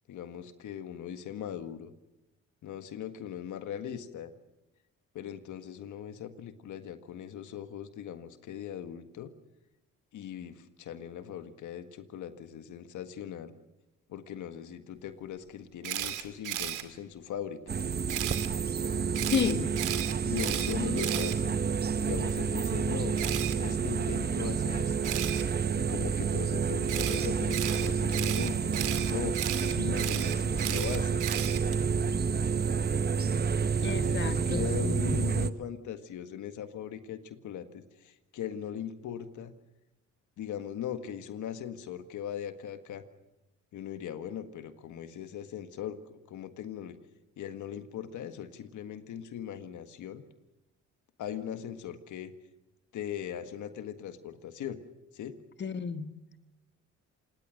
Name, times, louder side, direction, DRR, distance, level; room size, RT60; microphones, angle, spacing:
voice 1, 0.1-1.9 2.6-4.3 5.1-9.3 10.1-13.5 14.1-17.6 20.2-21.6 22.0-23.2 23.6-25.1 25.8-28.7 29.1-31.2 33.8-39.5 40.4-43.0 43.7-47.0 47.4-50.2 51.2-52.3 52.9-54.8 55.1-55.4, left 9 dB, 75° left, 1.7 m, -39 dB
Camera, 15.8-16.8 18.1-18.5 19.1-21.9 23.2-23.5 25.0-25.4 26.9-31.8, right 12 dB, 85° right, 2.4 m, -35 dB
sound 1, 17.7-35.5, right 6 dB, 35° right, 0.9 m, -29 dB
voice 2, 19.3-19.8 33.8-35.3 55.6-56.2, left 6 dB, 35° left, 1.5 m, -32 dB
27.0 x 20.0 x 6.5 m
cardioid pair, 90°, 30 cm